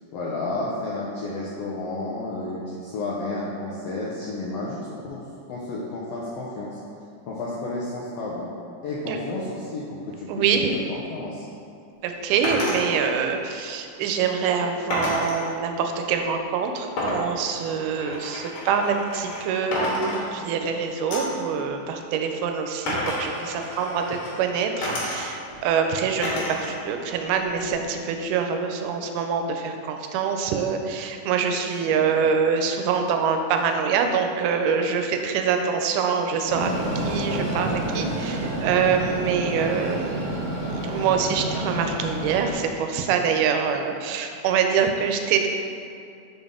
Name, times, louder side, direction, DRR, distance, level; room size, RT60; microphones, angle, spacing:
voice 1, 0.1-4.8 5.0-5.2 5.5-6.8 7.3-8.5 8.8-10.6 10.9-11.4 31.9-32.2, left 2 dB, 85° left, -5 dB, 1.4 m, -31 dB
voice 2, 10.3-10.8 12.0-40.4 40.7-45.5, right 6 dB, 90° right, 5 dB, 2.1 m, -25 dB
sound 1, 12.4-12.9 14.9-15.5 17.0-19.4 19.7-20.7 21.1-21.4 22.9-24.3 24.8-25.6 26.2-26.8 27.1-27.9, left 1 dB, 70° left, 2.5 m, -30 dB
Train, 36.5-42.5, right 1 dB, 55° right, 1.3 m, -29 dB
5.3 x 5.3 x 3.5 m, 2.5 s
omnidirectional pair, 3.6 m